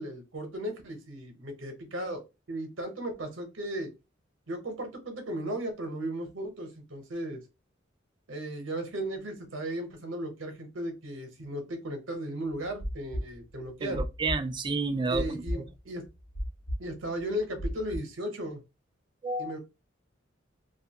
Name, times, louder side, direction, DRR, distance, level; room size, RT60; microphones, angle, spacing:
voice 1, 0.0-3.9 4.5-7.4 8.3-14.0 15.1-16.0 16.8-18.6 19.4-19.6, right 1 dB, 70° right, 0.8 m, -36 dB
sound 1, 12.6-15.8 16.0-18.0, equal, 55° left, 0.9 m, -34 dB
voice 2, 13.8-15.6 19.2-19.5, right 3 dB, 25° right, 0.3 m, -31 dB
2.6 x 2.4 x 2.8 m
head